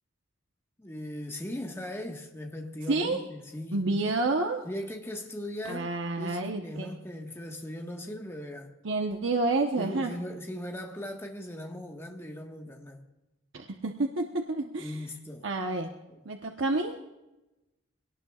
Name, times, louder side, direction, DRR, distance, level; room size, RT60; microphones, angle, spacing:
voice 1, 0.8-3.9 4.6-5.9 6.2-8.7 9.8-13.0 14.8-15.5 16.1-16.2, left 1 dB, 15° left, 1.6 m, -39 dB
voice 2, 2.9-3.2 3.7-4.6 5.7-6.9 8.8-10.1 13.5-15.0 15.4-15.9 16.2-17.0, right 2 dB, 75° right, 1.1 m, -29 dB
25.0 x 18.5 x 2.5 m
head